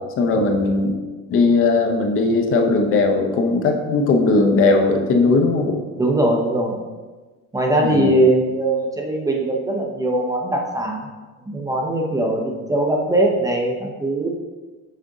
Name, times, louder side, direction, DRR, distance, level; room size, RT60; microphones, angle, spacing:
voice 1, 0.2-1.0 1.3-5.7 7.8-8.1, left 3 dB, 45° left, 3 dB, 0.8 m, -18 dB
voice 2, 6.0-6.8 7.5-11.0 11.5-14.3, right 1 dB, 10° right, 0 dB, 0.7 m, -20 dB
6.4 x 5.0 x 3.8 m, 1.3 s
cardioid pair, 150°, 31 cm